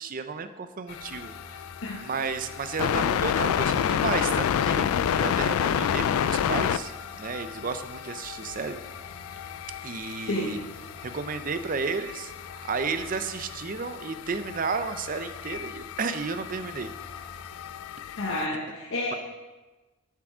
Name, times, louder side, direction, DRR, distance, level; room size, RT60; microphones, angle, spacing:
voice 1, 0.0-1.6 2.0-4.9 5.2-8.8 9.8-10.6 11.0-16.9, right 4 dB, 40° right, 10 dB, 0.5 m, -32 dB
sound 1, 0.9-18.5, left 9 dB, 90° left, 0.3 m, -30 dB
sound 2, 1.1-17.8, equal, 25° left, 2.2 m, -51 dB
voice 2, 17.9-19.2, left 1 dB, 70° left, -2 dB, 0.9 m, -31 dB
7.4 x 7.1 x 5.0 m, 1.2 s
head